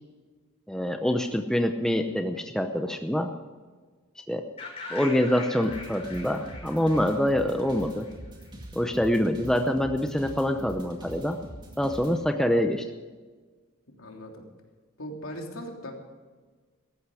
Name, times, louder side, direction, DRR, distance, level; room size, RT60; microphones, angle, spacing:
voice 1, 0.7-3.3 4.3-4.4 4.9-8.1 8.7-11.4 11.8-12.8, equal, 5° left, 5 dB, 0.7 m, -25 dB
sound 1, 4.6-8.5, left 3 dB, 25° left, 5.6 m, -42 dB
sound 2, 5.6-12.1, right 1 dB, 20° right, 2.1 m, -43 dB
voice 2, 13.9-14.4 15.0-15.9, equal, 75° left, 1 dB, 3.3 m, -39 dB
17.5 x 14.0 x 5.0 m, 1.4 s
head